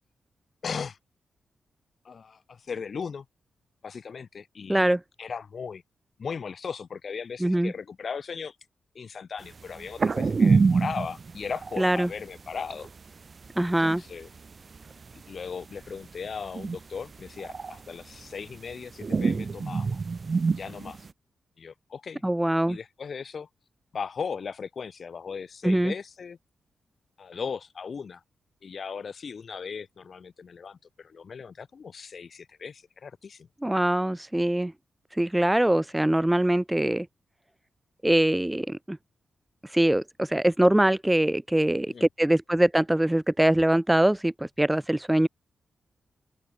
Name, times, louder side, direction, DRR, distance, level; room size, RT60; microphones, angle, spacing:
voice 1, 0.6-1.0 2.1-3.3 3.8-4.9 5.2-5.8 6.2-8.6 9.0-12.9 13.8-14.3 15.3-20.0 20.6-21.1 21.6-22.2 22.7-23.5 23.9-26.4 27.2-28.2 28.6-33.5 41.9-42.1, left 6 dB, 55° left, 6.8 m, -37 dB
voice 2, 4.7-5.0 7.4-7.7 11.8-12.1 13.6-14.0 22.2-22.8 25.6-25.9 33.6-34.7 35.1-37.1 38.0-39.0 39.6-45.3, right 1 dB, 10° right, 0.9 m, -23 dB
sound 1, 9.7-12.1 12.4-12.5 12.7-13.0 13.4-14.0 14.2-15.5 15.9-16.9 17.2-18.7 19.0-21.1, right 4 dB, 40° right, 1.5 m, -26 dB
open air
cardioid pair, 100°, 0 cm